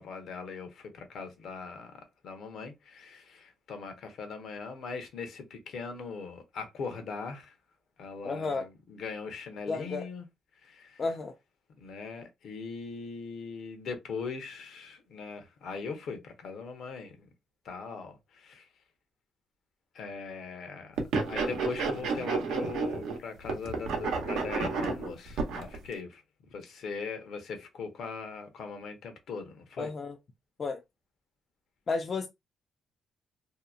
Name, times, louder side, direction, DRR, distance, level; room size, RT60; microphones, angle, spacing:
voice 1, 0.0-7.5 8.0-10.3 10.6-11.0 11.8-17.3 17.6-18.7 19.9-26.2 26.5-29.9, left 5 dB, 70° left, 0.8 m, -40 dB
voice 2, 8.2-8.7 9.7-10.1 11.0-11.3 29.8-30.2 30.6-30.8 31.9-32.3, left 4 dB, 40° left, 0.4 m, -32 dB
sound 1, 21.0-23.2 23.4-25.8, right 4 dB, 85° right, 0.7 m, -31 dB
2.8 x 2.1 x 2.4 m
cardioid pair, 90°, 0 cm